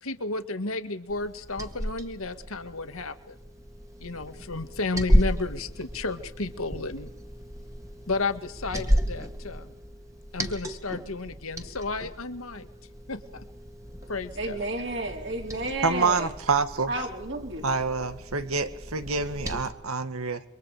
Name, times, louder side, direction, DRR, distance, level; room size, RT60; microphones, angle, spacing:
voice 1, 0.0-3.4 4.0-7.1 8.1-9.7 10.3-12.7 13.1-13.5 14.1-14.6, left 3 dB, 80° left, 9 dB, 1.9 m, -32 dB
Liquid, 1.1-19.7, equal, 15° right, 2.1 m, -33 dB
voice 2, 14.4-16.3 16.9-17.6, right 2 dB, 55° right, 1 dB, 4.1 m, -31 dB
voice 3, 15.8-16.9 17.6-20.4, right 4 dB, 90° right, 9 dB, 1.9 m, -27 dB
28.0 x 25.0 x 5.0 m, 0.73 s
head